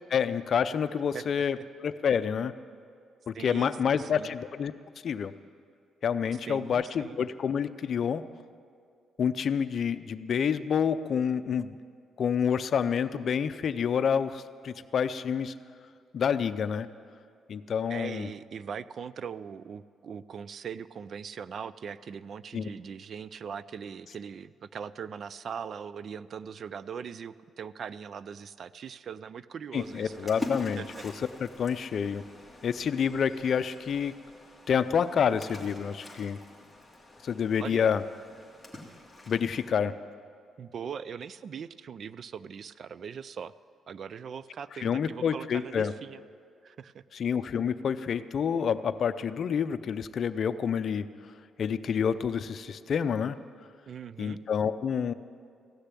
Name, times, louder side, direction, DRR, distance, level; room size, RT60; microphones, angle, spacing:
voice 1, 0.1-2.5 3.3-4.7 5.0-5.3 6.0-8.2 9.2-11.8 12.2-15.5 16.1-16.9 17.5-18.3 22.5-22.6 29.7-30.8 31.4-32.2 32.6-34.1 34.7-36.4 37.2-38.0 39.3-40.0 44.8-45.9 47.1-51.1 51.6-53.4 54.2-55.1, left 7 dB, 55° left, 13 dB, 0.5 m, -28 dB
voice 2, 3.3-4.3 6.5-7.2 17.9-30.3 30.8-31.0 37.6-37.9 40.6-43.5 43.9-46.2 46.6-47.0 53.9-54.4, right 7 dB, 55° right, 17 dB, 0.4 m, -40 dB
Splash splatter, 29.7-39.7, left 2 dB, 5° left, 2.4 m, -44 dB
16.0 x 6.7 x 9.8 m, 2.2 s
cardioid pair, 90°, 0 cm